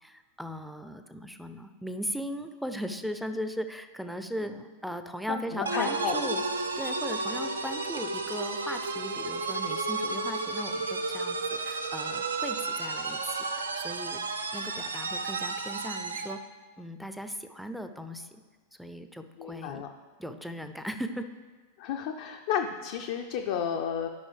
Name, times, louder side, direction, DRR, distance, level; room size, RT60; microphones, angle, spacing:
voice 1, 0.0-6.4 6.8-14.2 14.5-16.4 16.8-18.4 18.8-19.8 20.2-21.3, equal, ahead, 8 dB, 0.5 m, -38 dB
voice 2, 5.3-6.1 19.4-19.9 21.8-24.1, left 8 dB, 50° left, 3 dB, 0.5 m, -32 dB
sound 1, 5.7-16.4, right 3 dB, 75° right, 0.5 m, -32 dB
12.0 x 5.4 x 3.3 m, 1.4 s
figure-of-eight pair, 90°, 0 cm